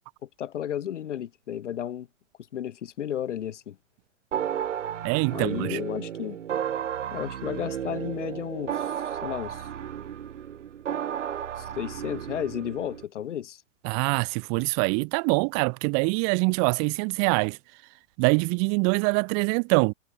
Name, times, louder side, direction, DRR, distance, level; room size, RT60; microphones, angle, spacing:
voice 1, 0.2-2.1 2.5-3.8 5.3-6.4 7.1-9.7 11.6-13.6, left 10 dB, 65° left, 5.5 m, -33 dB
sound 1, 4.3-13.0, right 9 dB, 70° right, 6.5 m, -33 dB
voice 2, 5.0-5.8 13.8-17.6 18.2-19.9, right 40 dB or more, 40° right, 1.6 m, -24 dB
figure-of-eight pair, 105°, 38 cm